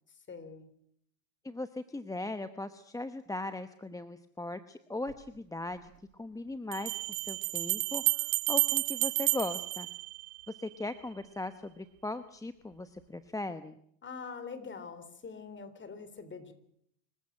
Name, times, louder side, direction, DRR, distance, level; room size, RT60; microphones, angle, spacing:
voice 1, 0.1-0.7 14.0-16.5, left 5 dB, 25° left, 12 dB, 3.8 m, -44 dB
voice 2, 1.4-5.9 6.2-9.9 10.5-13.8, left 2 dB, 10° left, 11 dB, 0.9 m, -39 dB
Bell, 5.1-5.2 6.7-10.6, right 23 dB, 85° right, 0.9 m, -31 dB
26.0 x 15.0 x 8.8 m, 0.69 s
supercardioid pair, 115°, 42 cm